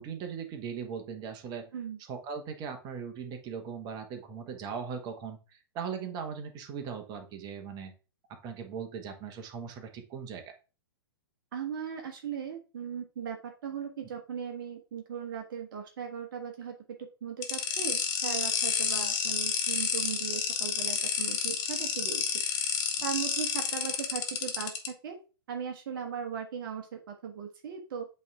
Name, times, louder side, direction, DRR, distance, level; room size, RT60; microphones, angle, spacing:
voice 1, 0.0-1.7 2.1-7.9 8.4-10.4, right 6 dB, 30° right, 4 dB, 1.4 m, -39 dB
voice 2, 11.5-22.2 23.0-25.2 25.5-28.1, right 7 dB, 55° right, 4 dB, 1.1 m, -38 dB
sound 1, 17.4-24.9, left 7 dB, 40° left, 1.7 m, -30 dB
8.3 x 3.4 x 3.5 m, 0.33 s
hypercardioid pair, 120°, 13 cm